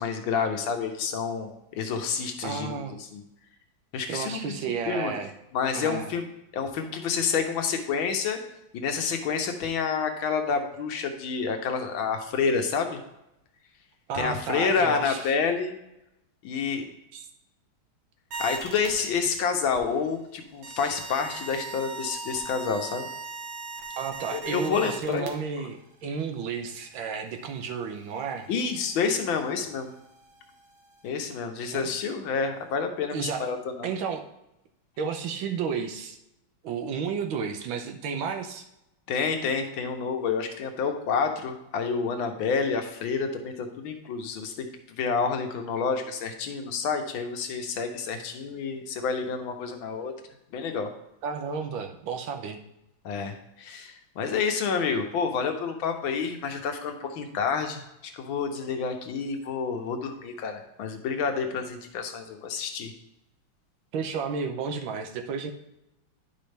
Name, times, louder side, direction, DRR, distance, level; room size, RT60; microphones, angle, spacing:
voice 1, 0.0-2.8 3.1-3.2 3.9-4.6 4.9-5.1 5.5-6.3 6.5-8.4 8.7-13.0 14.1-15.7 16.4-16.9 18.4-23.1 24.3-25.3 25.6-25.7 28.5-29.9 31.0-33.9 39.1-50.1 50.5-50.9 53.0-57.8 58.1-62.9, left 5 dB, 85° left, 5 dB, 1.7 m, -29 dB
voice 2, 2.4-3.0 4.1-5.3 5.7-6.1 14.1-15.3 17.1-17.3 24.0-28.5 31.7-31.9 33.1-33.5 33.8-34.2 35.0-36.2 36.6-38.6 51.2-52.6 63.9-65.5, right 6 dB, 85° right, 5 dB, 1.6 m, -32 dB
sound 1, 18.3-18.9 19.6-20.0 20.6-25.3 26.9-27.0 27.2-27.3 27.6-31.1, right 3 dB, 65° right, 1.7 m, -39 dB
10.0 x 5.3 x 3.4 m, 0.86 s
omnidirectional pair, 2.1 m